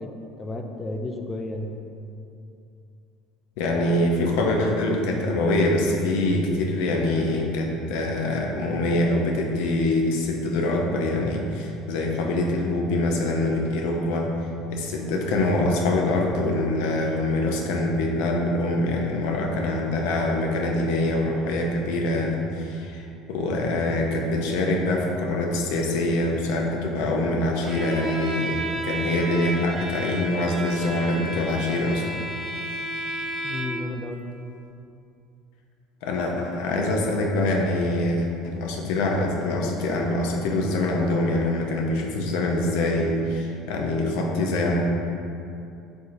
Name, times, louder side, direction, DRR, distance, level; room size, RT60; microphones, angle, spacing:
voice 1, 0.0-1.8 33.4-34.3, left 2 dB, 25° left, 4 dB, 0.4 m, -33 dB
voice 2, 3.6-14.3 14.7-32.0 36.0-44.8, left 2 dB, 75° left, 1 dB, 0.6 m, -24 dB
Bowed string instrument, 27.6-33.9, right 1 dB, 30° right, 0.7 m, -32 dB
4.6 x 3.8 x 2.6 m, 2.6 s
hypercardioid pair, 80°, 0 cm